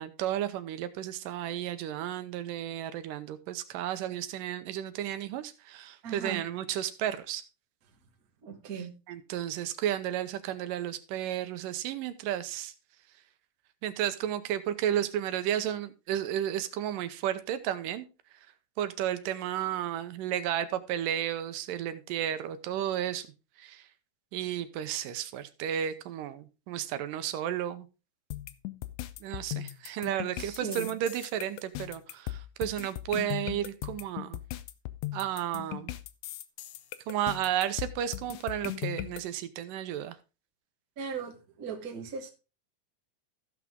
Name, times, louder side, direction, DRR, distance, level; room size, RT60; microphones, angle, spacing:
voice 1, 0.0-7.4 8.8-12.7 13.8-18.1 18.3-18.4 18.8-23.3 23.6-23.9 24.3-27.9 29.2-34.4 35.1-35.9 37.1-40.2, right 11 dB, 85° right, 11 dB, 2.4 m, -33 dB
voice 2, 6.0-6.4 8.4-8.9 30.4-30.9 41.0-42.3, right 6 dB, 45° right, 3 dB, 1.2 m, -38 dB
sound 1, 28.3-39.2, left 16 dB, 75° left, 1.8 m, -38 dB
14.5 x 6.0 x 3.6 m, 0.30 s
omnidirectional pair, 3.8 m